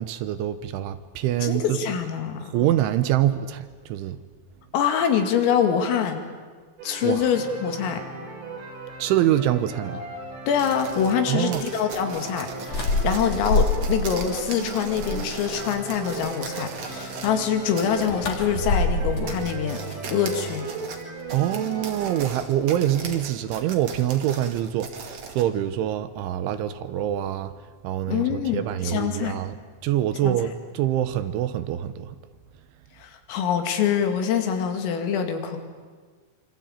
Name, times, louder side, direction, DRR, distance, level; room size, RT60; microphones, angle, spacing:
voice 1, 0.0-1.8 2.5-4.2 7.0-7.2 9.0-10.0 11.3-11.6 21.3-27.5 27.8-29.5 29.8-32.2, right 12 dB, 75° right, 3.2 m, -25 dB
voice 2, 1.4-2.6 4.7-6.2 6.8-8.0 10.5-19.8 20.1-20.7 28.1-29.4 30.2-30.4 33.0-35.6, left 8 dB, 85° left, 5.0 m, -25 dB
sound 1, 6.8-22.3, right 3 dB, 60° right, 8.0 m, -38 dB
sound 2, 10.5-17.4 17.8-18.1 18.6-18.7 19.1-25.5, right 5 dB, 45° right, 2.3 m, -38 dB
sound 3, 12.7-14.3 14.6-15.5 17.7-20.5, left 2 dB, 40° left, 3.2 m, -27 dB
25.5 x 25.5 x 9.0 m
omnidirectional pair, 5.8 m